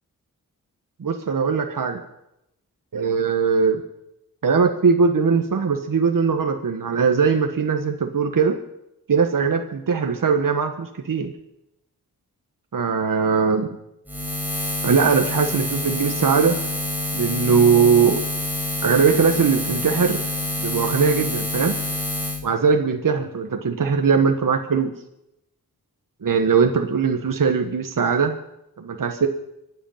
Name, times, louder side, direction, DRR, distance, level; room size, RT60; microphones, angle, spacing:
voice 1, 1.0-2.0 2.9-3.8 4.4-8.6 9.1-11.3 12.7-13.7 14.8-16.6 17.1-18.2 18.8-20.2 20.6-21.7 22.4-24.9 26.2-28.3 28.8-29.3, right 5 dB, 60° right, 5 dB, 1.4 m, -20 dB
Buzz, 14.1-22.4, left 1 dB, 5° right, 5.0 m, -27 dB
24.0 x 8.3 x 5.8 m, 0.83 s
cardioid pair, 45°, 38 cm